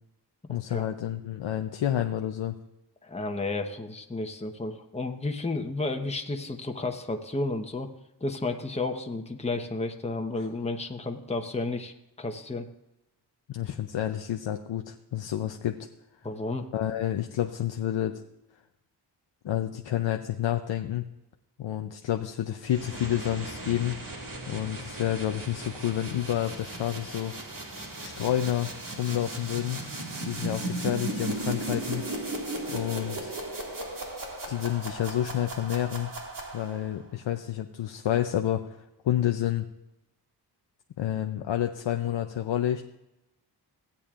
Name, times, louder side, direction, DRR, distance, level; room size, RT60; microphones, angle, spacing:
voice 1, 0.5-2.5 13.5-15.8 16.7-18.2 19.4-21.0 21.6-24.0 24.5-27.3 28.0-29.8 30.2-32.1 32.7-33.3 34.5-36.1 36.5-38.8 39.0-39.7 41.0-42.8, left 11 dB, 85° left, 5 dB, 0.7 m, -29 dB
voice 2, 3.0-7.9 8.2-12.7 16.2-16.6, left 2 dB, 15° left, 4 dB, 1.0 m, -32 dB
sound 1, 22.6-36.9, right 2 dB, 50° right, 2.1 m, -36 dB
17.0 x 8.5 x 2.5 m, 0.92 s
cardioid pair, 65°, 43 cm